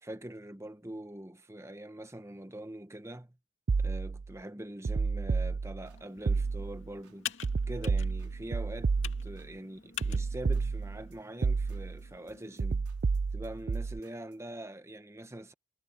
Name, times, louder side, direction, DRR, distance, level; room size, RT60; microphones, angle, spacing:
voice 1, 0.0-3.4 3.8-7.3 7.7-12.9 13.3-15.5, right 1 dB, 10° right, 1.0 m, -43 dB
sound 1, 3.7-4.3 4.8-5.9 6.3-6.9 7.4-9.5 10.0-11.1 11.4-12.0 12.6-14.0, right 4 dB, 40° right, 0.4 m, -31 dB
Computer keyboard, 5.8-12.6, left 9 dB, 55° left, 2.5 m, -46 dB
sound 2, 5.9-6.4 6.7-7.3 7.6-7.8 8.2-8.7 9.1-9.6 9.9-10.3 10.5-14.5, right 2 dB, 80° right, 5.7 m, -65 dB
head